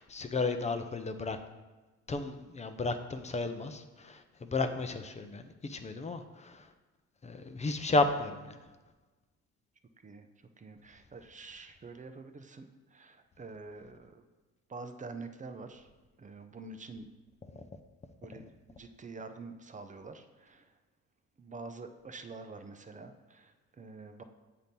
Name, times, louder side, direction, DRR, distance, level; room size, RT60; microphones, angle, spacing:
voice 1, 0.0-1.4 2.1-6.7 7.2-8.7 17.5-17.7, left 3 dB, 25° left, 8 dB, 0.5 m, -33 dB
voice 2, 10.6-14.2 14.7-15.9 16.2-17.1 17.5-17.7 18.2-20.7 21.4-24.2, right 3 dB, 25° right, 7 dB, 0.5 m, -47 dB
7.7 x 2.8 x 5.2 m, 1.2 s
cardioid pair, 90°, 30 cm